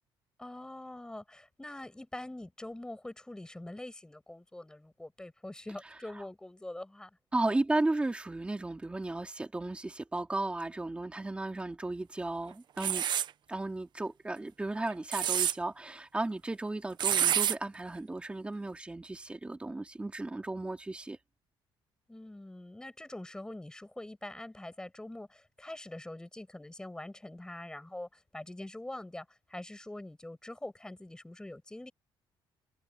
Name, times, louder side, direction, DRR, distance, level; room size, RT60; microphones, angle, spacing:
voice 1, 0.4-7.1 22.1-31.9, left 1 dB, 10° left, 7.5 m, -44 dB
voice 2, 7.3-13.0 13.5-21.2, right 2 dB, 10° right, 3.0 m, -34 dB
sound 1, 12.8-13.3 14.9-15.5 17.0-17.6, right 10 dB, 50° right, 0.8 m, -27 dB
cardioid pair, 140°, 9 cm